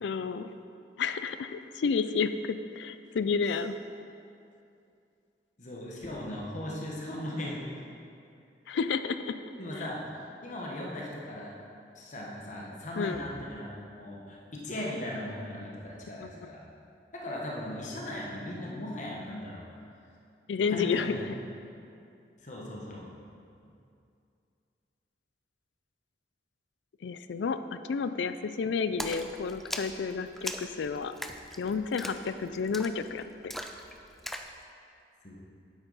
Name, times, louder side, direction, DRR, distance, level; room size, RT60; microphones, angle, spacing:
voice 1, 0.0-0.6 1.0-3.7 8.7-9.3 13.0-13.2 16.2-16.5 20.5-21.4 27.0-31.1 31.6-33.5, left 5 dB, 85° left, 11 dB, 0.4 m, -31 dB
voice 2, 5.6-7.7 9.6-10.0 10.4-11.5 11.9-13.7 14.0-16.6 17.1-19.9 20.7-21.3 22.4-23.1 35.2-35.4, left 1 dB, 45° left, -3 dB, 1.2 m, -38 dB
Splash splatter, 29.0-34.5, equal, ahead, 0.3 m, -40 dB
9.2 x 8.0 x 4.1 m, 2.5 s
head